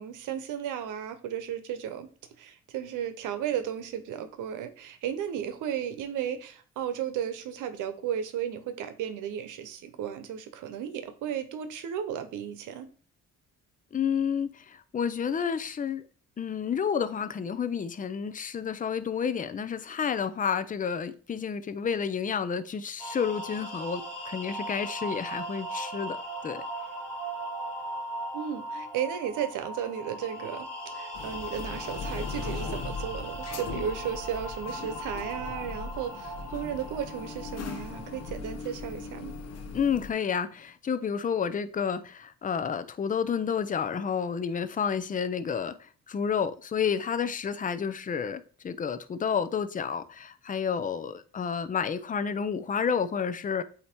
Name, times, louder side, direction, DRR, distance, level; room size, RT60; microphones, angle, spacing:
voice 1, 0.0-2.1 2.4-12.9 28.3-39.3, right 9 dB, 85° right, 0.9 m, -34 dB
voice 2, 13.9-16.0 16.4-26.2 26.4-26.6 39.7-53.6, left 7 dB, 25° left, 0.5 m, -30 dB
sound 1, 23.0-38.3, right 1 dB, 5° left, 2.5 m, -38 dB
sound 2, 31.1-40.1, left 5 dB, 55° left, 1.0 m, -39 dB
8.4 x 2.9 x 4.4 m
cardioid pair, 90°, 30 cm